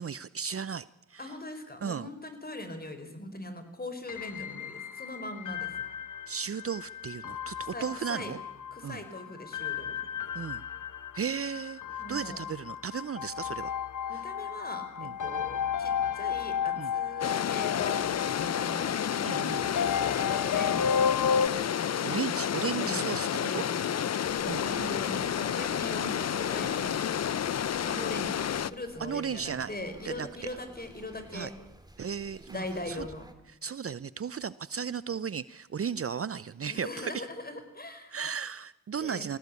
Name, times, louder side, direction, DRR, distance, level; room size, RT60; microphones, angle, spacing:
voice 1, 0.0-1.3 1.8-2.1 6.3-8.4 8.8-9.0 10.3-10.6 11.1-11.8 12.1-13.7 14.1-14.2 15.0-15.1 16.8-16.9 19.2-19.7 22.0-23.3 23.5-23.6 24.5-24.7 29.0-29.7 30.0-30.3 31.3-31.5 32.0-33.1 33.6-37.2 38.1-39.4, right 7 dB, 45° right, 18 dB, 0.7 m, -35 dB
voice 2, 1.2-5.8 7.6-8.4 8.7-10.0 12.0-12.4 14.1-18.9 19.7-21.4 22.7-27.0 27.8-31.5 32.5-33.3 36.7-38.2 39.0-39.2, left 1 dB, 30° left, 9 dB, 4.4 m, -41 dB
sound 1, 4.1-21.5, left 7 dB, 70° left, 1.2 m, -33 dB
sound 2, 17.2-28.7, left 9 dB, 55° left, 0.6 m, -30 dB
sound 3, 24.2-33.3, right 1 dB, 10° right, 2.9 m, -53 dB
20.0 x 16.5 x 8.4 m, 0.87 s
cardioid pair, 50°, 32 cm